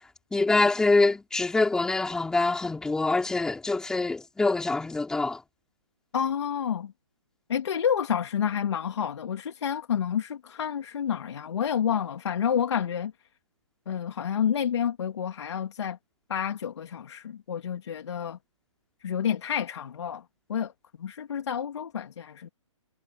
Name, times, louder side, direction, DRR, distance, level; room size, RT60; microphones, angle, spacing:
voice 1, 0.3-5.4, left 3 dB, 5° left, 3.9 m, -25 dB
voice 2, 6.1-6.9 7.5-13.1 13.9-16.0 16.3-18.4 19.0-20.2 20.5-20.7 21.0-22.5, left 8 dB, 60° left, 2.8 m, -29 dB
hypercardioid pair, 160°, 16 cm